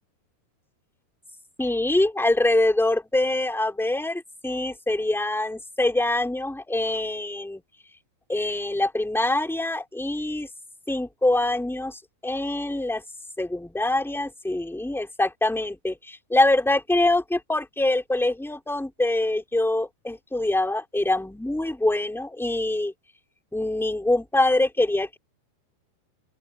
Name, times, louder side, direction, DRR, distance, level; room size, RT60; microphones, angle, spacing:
voice 1, 1.6-7.6 8.3-10.5 10.9-13.0 13.4-22.9 23.5-25.2, left 2 dB, ahead, 2.4 m, -24 dB
open air
omnidirectional pair, 4.8 m